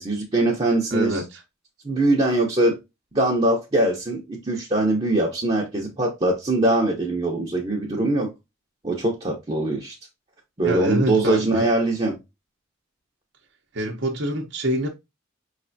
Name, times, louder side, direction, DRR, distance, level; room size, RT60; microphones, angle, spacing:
voice 1, 0.0-1.2 1.8-2.8 3.1-8.3 8.8-9.9 10.6-12.2, right 2 dB, 25° right, 0.8 m, -22 dB
voice 2, 0.9-1.4 10.6-11.6 13.7-14.9, right 1 dB, 60° right, 0.8 m, -25 dB
5.3 x 3.2 x 2.6 m
head